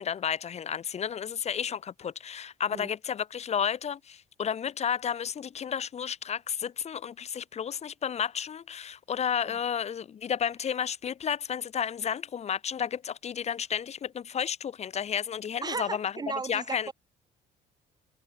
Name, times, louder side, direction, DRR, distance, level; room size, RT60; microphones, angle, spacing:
voice 1, 0.0-16.1 16.5-16.9, left 8 dB, 40° left, 1.2 m, -32 dB
voice 2, 15.6-16.9, right 4 dB, 25° right, 0.7 m, -35 dB
cardioid pair, 110°, 17 cm